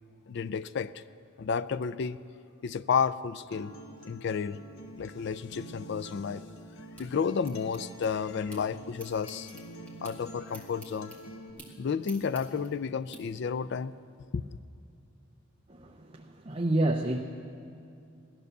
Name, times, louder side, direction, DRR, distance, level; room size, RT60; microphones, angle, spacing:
voice 1, 0.3-1.0 1.4-2.2 2.6-3.7 4.0-4.6 5.0-6.4 7.0-9.5 10.0-11.1 11.8-13.9 14.3-14.4, left 6 dB, 55° left, 0.3 m, -31 dB
Acoustic guitar, 3.5-11.5, equal, 80° left, 1.6 m, -47 dB
sound 1, 6.3-8.6 8.9-13.2, right 1 dB, 5° left, 1.8 m, -51 dB
voice 2, 15.7-17.2, right 1 dB, 25° right, 0.6 m, -29 dB
17.0 x 12.0 x 6.6 m
head